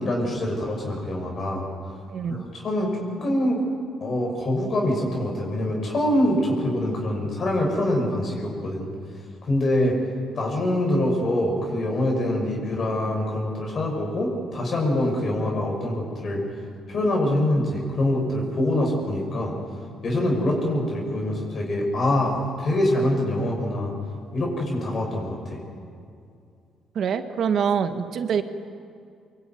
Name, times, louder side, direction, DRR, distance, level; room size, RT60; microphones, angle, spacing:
voice 1, 0.0-1.7 2.3-3.6 4.0-8.9 9.5-9.9 10.4-16.4 16.9-19.5 20.0-23.9 24.3-25.6, left 1 dB, 45° left, -1 dB, 6.5 m, -24 dB
voice 2, 2.1-2.4 26.9-28.4, right 7 dB, 60° right, 8 dB, 1.8 m, -25 dB
24.5 x 23.5 x 9.5 m, 2.4 s
cardioid pair, 110°, 0 cm